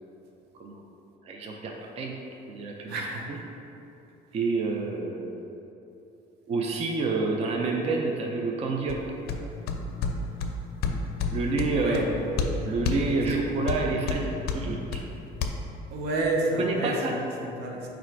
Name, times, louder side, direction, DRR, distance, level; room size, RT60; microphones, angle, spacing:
voice 1, 1.2-2.2 2.5-3.0 3.3-3.4 4.3-5.5 6.5-9.0 11.3-15.0 16.6-17.2, right 3 dB, 40° right, 1 dB, 0.4 m, -28 dB
voice 2, 2.9-3.4 11.6-12.0 13.3-13.4 15.9-17.9, right 2 dB, 75° right, 0 dB, 0.7 m, -30 dB
sound 1, 8.9-15.5, left 4 dB, 70° left, 0.4 m, -31 dB
4.8 x 2.5 x 4.4 m, 2.9 s
cardioid pair, 110°, 17 cm